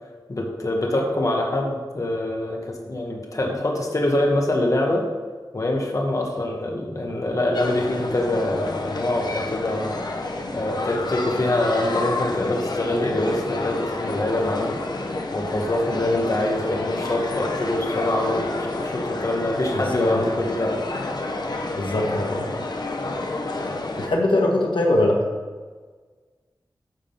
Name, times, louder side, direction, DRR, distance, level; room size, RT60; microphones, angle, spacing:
voice 1, 0.3-5.0 5.5-10.1 10.5-14.8 15.3-20.8, left 1 dB, 45° left, 0 dB, 1.4 m, -24 dB
sound 1, 7.5-24.1, left 2 dB, 60° left, 1.0 m, -29 dB
voice 2, 19.7-20.2 21.8-22.5 24.0-25.2, left 1 dB, 85° left, 0 dB, 1.5 m, -22 dB
10.5 x 3.8 x 7.1 m, 1.4 s
wide cardioid pair, 95°, 8 cm